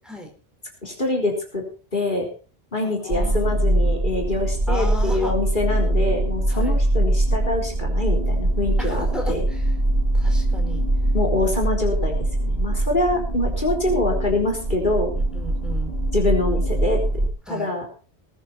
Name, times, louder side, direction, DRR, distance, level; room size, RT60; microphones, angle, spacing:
voice 1, 0.8-1.6 1.9-2.3 2.7-9.4 11.1-12.2 12.4-15.1 16.1-17.0 17.5-17.9, left 2 dB, 50° left, 1 dB, 4.2 m, -25 dB
voice 2, 2.8-3.5 4.7-5.4 6.5-6.7 8.8-9.7 10.1-10.8 15.1-16.0 17.5-17.7, equal, ahead, 2 dB, 4.7 m, -35 dB
sound 1, 3.1-17.3, right 1 dB, 60° right, 3.2 m, -22 dB
20.0 x 10.0 x 4.4 m, 0.37 s
omnidirectional pair, 1.1 m